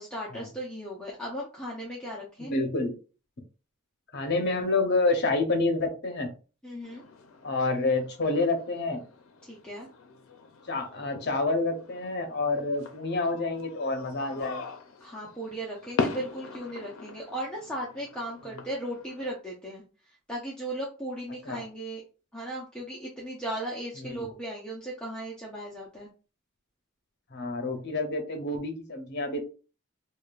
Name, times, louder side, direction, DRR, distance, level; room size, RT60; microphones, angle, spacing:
voice 1, 0.0-2.5 6.6-7.0 9.4-9.9 15.0-22.0 22.3-26.1, right 1 dB, 5° left, -5 dB, 0.6 m, -37 dB
voice 2, 2.4-2.9 4.1-6.3 7.4-9.0 10.7-14.7 21.5-21.6 24.0-24.3 27.3-29.4, left 3 dB, 50° left, 4 dB, 0.8 m, -28 dB
sound 1, 6.8-19.3, left 4 dB, 75° left, 0.5 m, -40 dB
4.9 x 2.3 x 2.4 m, 0.35 s
head